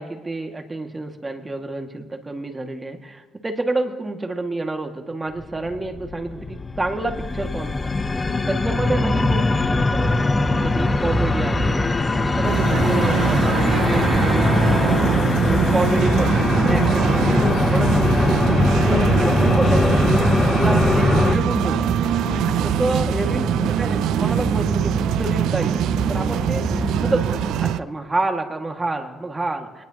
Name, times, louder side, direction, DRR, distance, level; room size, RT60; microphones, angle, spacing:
voice 1, 0.0-9.4 9.8-10.3 10.6-12.0 12.4-13.4 13.8-17.3 17.7-17.9 18.2-18.4 19.1-19.9 20.6-21.8 22.6-26.7 27.0-27.3 27.6-29.8, right 2 dB, 20° right, 4 dB, 2.0 m, -28 dB
sound 1, 5.4-21.4, left 3 dB, 25° left, 0.8 m, -21 dB
voice 2, 8.2-8.8 12.1-12.4 16.6-17.8 18.8-19.3 22.2-22.8, left 8 dB, 60° left, 20 dB, 0.4 m, -33 dB
sound 2, 8.9-27.7, right 1 dB, 5° right, 0.9 m, -27 dB
sound 3, 12.4-27.8, right 12 dB, 85° right, 0.4 m, -23 dB
25.0 x 19.5 x 3.0 m, 1.3 s
cardioid pair, 90°, 0 cm